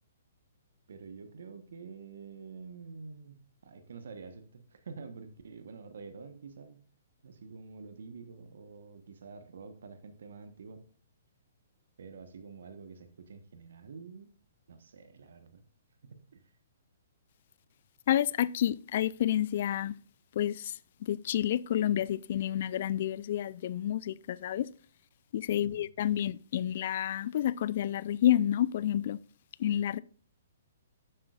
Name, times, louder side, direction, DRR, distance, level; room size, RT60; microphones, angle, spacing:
voice 1, 0.9-6.8 7.2-10.8 12.0-14.3 14.7-15.6 16.0-16.5 25.5-25.9, right 5 dB, 70° right, 1.1 m, -48 dB
voice 2, 18.1-19.9 20.4-20.7 21.0-24.7 25.3-29.2 29.6-30.0, left 11 dB, 55° left, 0.4 m, -29 dB
11.0 x 7.7 x 2.4 m
hypercardioid pair, 130°, 0 cm